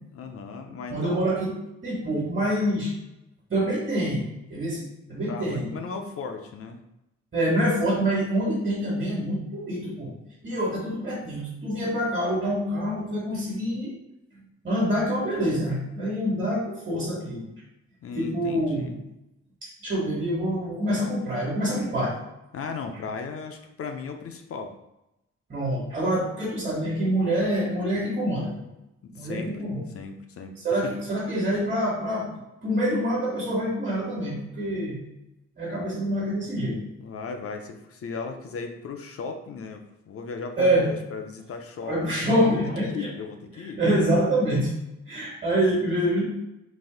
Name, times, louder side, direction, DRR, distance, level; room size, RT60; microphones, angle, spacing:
voice 1, 0.1-1.3 5.3-6.8 18.0-19.0 22.5-24.7 29.0-29.6 29.9-30.9 37.0-42.5 42.8-43.8, left 5 dB, 50° left, 5 dB, 0.5 m, -36 dB
voice 2, 0.9-1.5 1.8-2.9 3.5-4.2 4.5-5.7 7.3-10.1 10.4-13.9 14.6-17.4 18.1-18.9 19.8-22.1 25.5-28.5 29.1-29.8 30.6-32.3 32.6-35.0 35.6-36.8 40.6-40.9 41.8-43.1 43.8-44.7 45.1-46.3, equal, 35° right, -6 dB, 1.4 m, -26 dB
4.1 x 2.6 x 3.8 m, 0.89 s
wide cardioid pair, 155°, 29 cm